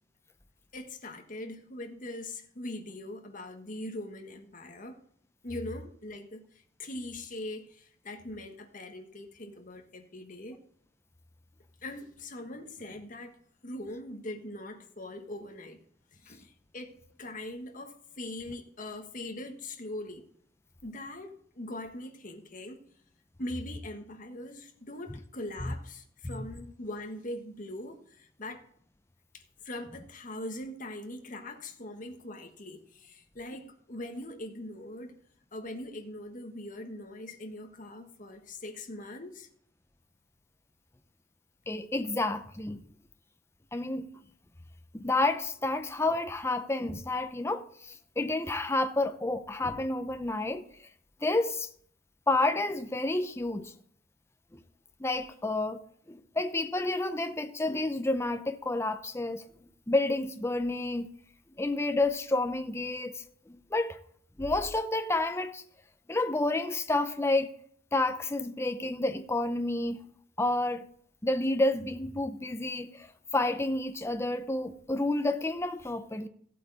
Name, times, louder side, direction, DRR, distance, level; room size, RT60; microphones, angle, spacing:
voice 1, 0.7-5.0 5.4-6.4 6.8-10.6 11.8-13.3 13.6-15.8 16.1-20.2 20.8-22.8 23.4-28.6 29.3-35.1 35.5-39.5, left 1 dB, 45° left, 1.5 m, -41 dB
voice 2, 41.7-42.8 43.7-44.1 44.9-50.6 51.2-51.7 52.3-53.7 54.5-54.6 55.0-55.8 56.1-59.4 59.9-61.1 61.6-64.0 64.4-65.6 66.1-67.5 67.9-70.0 70.4-70.8 71.2-73.1 73.3-76.3, left 2 dB, 15° left, 0.6 m, -30 dB
15.0 x 8.3 x 4.1 m
head